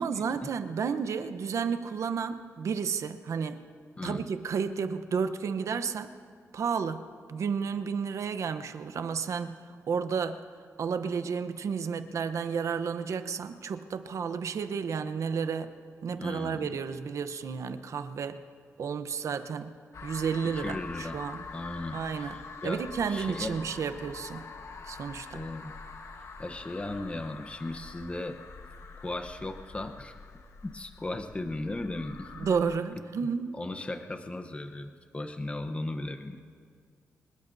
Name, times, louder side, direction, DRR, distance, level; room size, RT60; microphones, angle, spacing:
voice 1, 0.0-3.6 4.0-6.1 6.5-7.0 7.3-9.6 9.9-10.4 10.8-15.7 16.0-18.4 18.8-19.8 20.0-21.4 21.9-22.4 22.6-24.4 24.8-25.5 32.4-33.6, right 6 dB, 65° right, 9 dB, 0.9 m, -32 dB
voice 2, 16.2-16.8 20.6-21.2 21.5-23.6 25.3-25.7 26.2-28.4 29.0-30.1 30.6-32.5 33.5-36.4, left 2 dB, 20° left, 5 dB, 0.9 m, -37 dB
sound 1, 19.9-32.8, left 4 dB, 60° left, 1.3 m, -45 dB
25.0 x 21.0 x 2.7 m, 2.1 s
cardioid pair, 90°, 6 cm